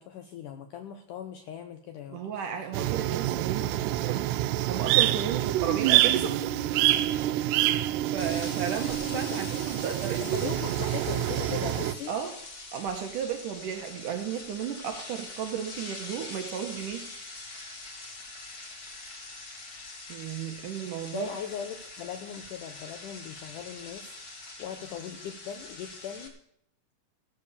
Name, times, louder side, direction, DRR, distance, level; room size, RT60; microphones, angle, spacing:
voice 1, 0.0-2.2 9.1-9.4 10.2-12.2 21.1-26.3, left 8 dB, 75° left, 7 dB, 1.9 m, -39 dB
voice 2, 2.1-4.4 4.7-6.5 7.0-10.4 12.1-12.4 12.7-17.1 20.1-21.3, right 8 dB, 70° right, 5 dB, 2.1 m, -34 dB
sound 1, 2.7-11.9, right 14 dB, 85° right, 2.7 m, -27 dB
sound 2, 8.2-26.3, left 2 dB, 40° left, 1.4 m, -43 dB
15.5 x 6.9 x 6.9 m, 0.73 s
omnidirectional pair, 4.6 m